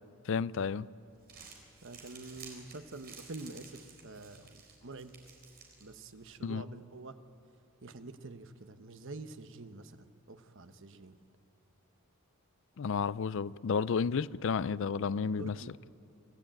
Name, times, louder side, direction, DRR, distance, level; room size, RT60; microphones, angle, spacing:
voice 1, 0.3-0.9 6.4-6.6 12.8-15.6, left 5 dB, 60° left, 0.4 m, -31 dB
Crumpling crinkling, 1.1-6.3, right 5 dB, 45° right, 4.1 m, -54 dB
voice 2, 1.8-5.2 5.8-7.2 7.8-11.2 15.4-15.7, right 3 dB, 60° right, 1.1 m, -47 dB
25.0 x 15.5 x 8.9 m
head